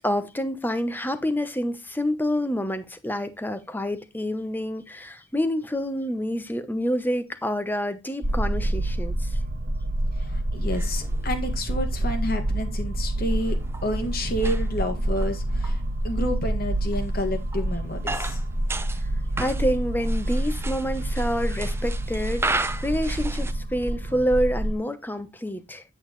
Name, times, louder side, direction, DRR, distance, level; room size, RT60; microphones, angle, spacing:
voice 1, 0.0-9.4 19.4-25.8, equal, 10° left, 0.9 m, -28 dB
sound 1, 8.2-24.7, right 1 dB, 55° right, 1.1 m, -27 dB
voice 2, 10.2-18.4, left 1 dB, 50° left, 2.1 m, -30 dB
sound 2, 10.6-11.5 12.5-12.6 13.3-15.8 16.1-16.2 16.8-19.0 19.3-23.5, right 2 dB, 15° right, 0.6 m, -35 dB
8.7 x 8.6 x 3.2 m
head